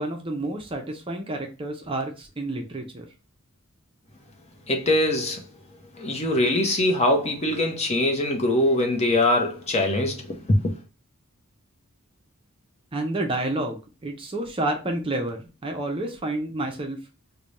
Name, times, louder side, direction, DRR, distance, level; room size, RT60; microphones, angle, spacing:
voice 1, 0.0-3.1 12.9-17.0, right 2 dB, 25° right, 0.6 m, -29 dB
voice 2, 4.7-5.4 6.0-10.7, left 1 dB, 30° left, 0.8 m, -22 dB
3.3 x 2.2 x 3.8 m
head